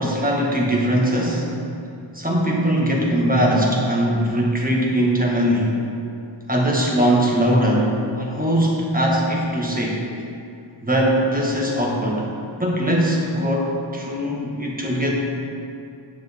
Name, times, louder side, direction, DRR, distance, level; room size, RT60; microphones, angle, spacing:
voice 1, 0.0-1.5 2.1-5.8 6.5-10.0 10.8-12.3 12.6-15.1, equal, 20° right, -3 dB, 1.5 m, -20 dB
9.0 x 6.7 x 3.6 m, 2.6 s
wide cardioid pair, 55°, 46 cm